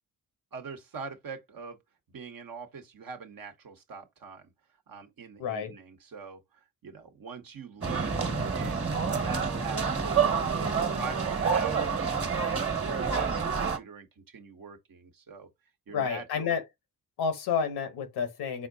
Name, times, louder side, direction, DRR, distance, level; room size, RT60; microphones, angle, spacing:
voice 1, 0.5-1.8 2.1-4.5 4.9-10.2 10.9-15.5 15.9-16.6, right 5 dB, 60° right, 1.2 m, -43 dB
voice 2, 5.4-5.8 15.9-16.6 17.2-18.7, left 6 dB, 80° left, 1.0 m, -30 dB
sound 1, 7.8-13.8, right 5 dB, 35° right, 1.4 m, -28 dB
4.3 x 3.7 x 2.7 m
supercardioid pair, 45°, 38 cm